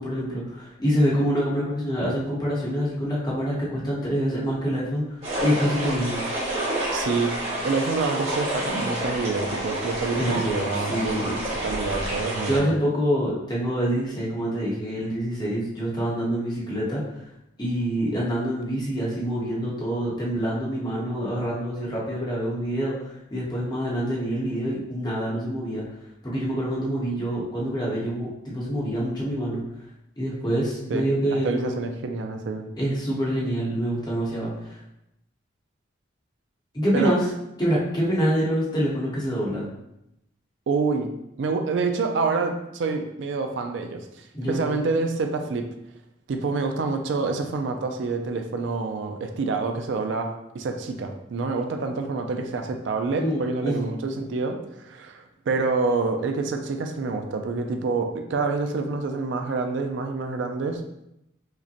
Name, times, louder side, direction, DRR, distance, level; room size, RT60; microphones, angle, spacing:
voice 1, 0.0-6.2 10.2-11.3 12.5-17.2 17.6-25.8 26.2-29.6 30.2-31.8 32.7-34.8 36.7-37.2 37.6-39.7 44.3-44.8 53.2-53.8, equal, 20° left, -6 dB, 0.9 m, -26 dB
sound 1, 5.2-12.6, right 1 dB, 30° right, 1.2 m, -29 dB
voice 2, 6.9-11.3 11.6-12.7 30.9-31.0 31.3-32.6 36.9-37.2 40.7-41.1 41.4-45.7 46.3-60.8, right 4 dB, 65° right, 5 dB, 0.4 m, -27 dB
4.9 x 2.1 x 2.8 m, 0.85 s
head